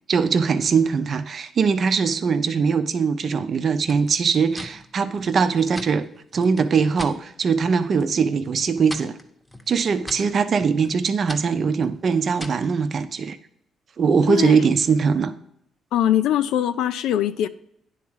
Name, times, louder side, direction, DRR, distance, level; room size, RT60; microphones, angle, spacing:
voice 1, 0.1-6.0 6.3-9.1 9.7-13.4 14.0-15.3, right 5 dB, 50° right, 0.7 m, -21 dB
sound 1, 3.9-7.2 7.6-8.2 8.4-12.7, equal, 5° left, 0.9 m, -41 dB
voice 2, 15.9-17.5, left 11 dB, 90° left, 0.4 m, -21 dB
10.0 x 3.7 x 6.2 m
cardioid pair, 90°, 0 cm